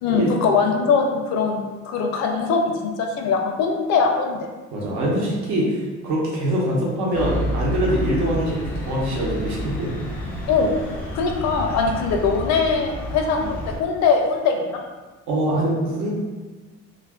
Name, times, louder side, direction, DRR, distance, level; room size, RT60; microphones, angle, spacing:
voice 1, 0.0-4.4 10.5-10.7 11.1-14.8, left 5 dB, 70° left, 3 dB, 0.5 m, -21 dB
voice 2, 4.7-9.9 15.3-16.1, right 1 dB, 70° right, -4 dB, 0.9 m, -23 dB
sound 1, 7.1-13.8, equal, 5° left, 0.5 m, -30 dB
2.5 x 2.4 x 3.5 m, 1.3 s
cardioid pair, 165°, 29 cm